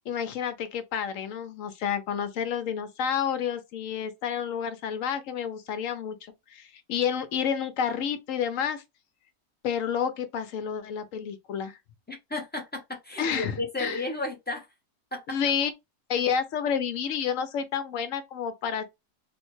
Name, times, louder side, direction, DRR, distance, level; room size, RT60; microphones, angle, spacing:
voice 1, 0.1-8.8 9.6-11.8 13.2-14.0 15.3-15.7 16.1-18.8, left 8 dB, 70° left, 0.9 m, -30 dB
voice 2, 12.1-14.7 15.1-15.4, left 2 dB, 10° left, 0.5 m, -33 dB
3.4 x 2.1 x 3.0 m
omnidirectional pair, 1.6 m